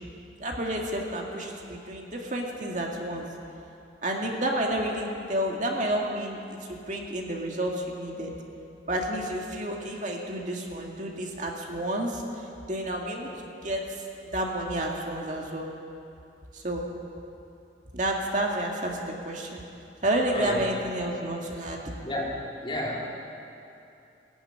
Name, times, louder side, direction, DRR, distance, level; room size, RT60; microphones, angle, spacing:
voice 1, 0.4-3.3 4.0-8.3 8.9-15.7 16.5-16.9 17.9-19.6 20.0-21.8, right 1 dB, 45° right, 0 dB, 2.1 m, -30 dB
voice 2, 20.3-20.7 22.0-23.0, left 1 dB, 30° left, -4 dB, 3.6 m, -31 dB
20.5 x 14.5 x 9.9 m, 2.7 s
head